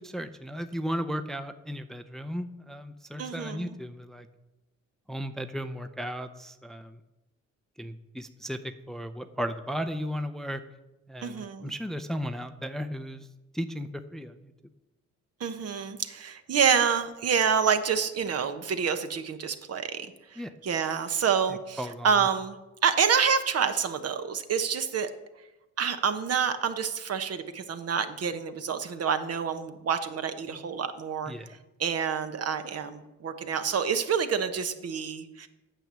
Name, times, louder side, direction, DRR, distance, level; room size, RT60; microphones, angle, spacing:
voice 1, 0.0-4.3 5.1-7.0 7.8-8.6 8.9-10.6 11.1-13.3 13.5-14.3 20.4-20.5 21.8-22.2 30.5-30.6 31.3-31.5, equal, ahead, 8 dB, 0.6 m, -35 dB
voice 2, 3.2-3.8 11.2-11.7 15.4-25.1 25.8-31.3 31.8-35.5, right 7 dB, 55° right, 9 dB, 1.1 m, -28 dB
9.0 x 6.9 x 7.5 m, 1.0 s
cardioid pair, 90°, 30 cm